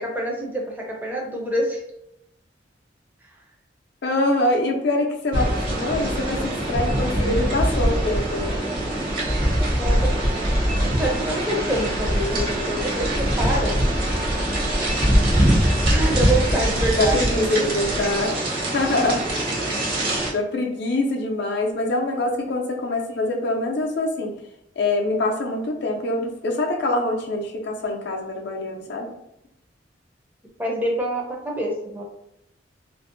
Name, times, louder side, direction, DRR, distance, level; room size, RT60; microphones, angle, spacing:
voice 1, 0.0-1.8 9.8-10.2 10.8-13.8 15.9-17.7 30.6-32.0, right 1 dB, 10° right, -2 dB, 0.5 m, -26 dB
voice 2, 4.0-8.6 16.9-18.4 18.7-19.3 20.3-24.4 24.8-29.1, left 2 dB, 60° left, 1 dB, 0.5 m, -24 dB
sound 1, 5.3-20.3, right 1 dB, 50° right, 0.7 m, -22 dB
2.5 x 2.1 x 2.5 m, 0.81 s
head